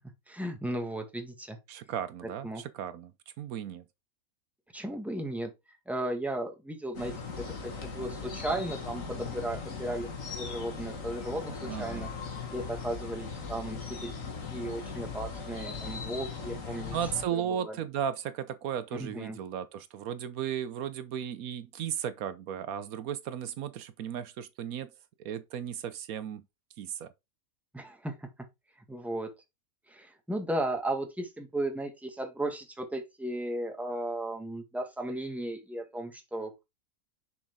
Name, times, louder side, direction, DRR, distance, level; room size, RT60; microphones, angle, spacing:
voice 1, 0.3-1.6 2.4-2.6 4.7-5.5 5.8-10.1 10.4-12.1 12.5-17.0 17.3-17.8 19.0-19.4 27.7-28.3 28.9-29.3 29.9-36.6, right 1 dB, ahead, 1.6 m, -35 dB
voice 2, 1.7-3.1 3.4-3.8 11.7-12.1 16.9-24.9 25.2-26.4 26.8-27.1, right 9 dB, 80° right, 1.2 m, -35 dB
sound 1, 6.9-17.2, left 5 dB, 65° left, 2.0 m, -39 dB
6.6 x 5.9 x 3.6 m
omnidirectional pair, 1.5 m